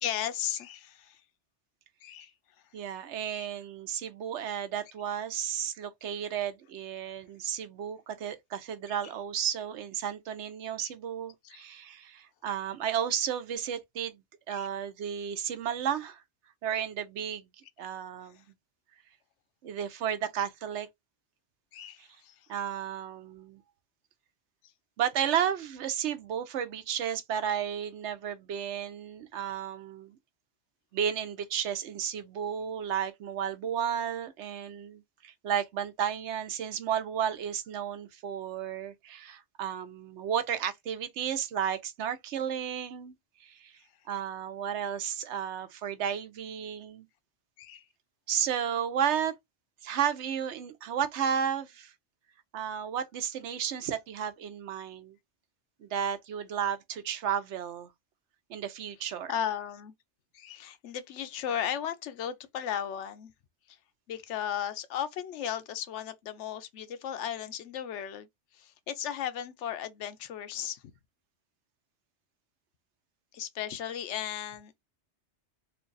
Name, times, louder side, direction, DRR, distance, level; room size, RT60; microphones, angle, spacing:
voice 1, 0.0-1.2 2.0-2.3 3.3-3.5 10.8-10.9 11.4-11.6 14.5-14.7 21.7-22.4 47.6-47.8 59.3-59.9 60.3-63.3 63.7-63.8 64.1-68.3 68.5-70.8 73.3-74.8, left 9 dB, 80° left, 0.9 m, -35 dB
voice 2, 2.7-14.2 14.5-16.2 16.6-17.5 17.8-18.4 19.6-20.9 22.0-22.1 22.5-23.6 25.0-30.2 30.9-43.7 44.1-47.1 48.3-49.3 49.8-51.9 52.5-55.2 55.8-57.9 58.5-59.3, right 8 dB, 75° right, 0.9 m, -33 dB
3.2 x 2.3 x 3.8 m
omnidirectional pair, 1.2 m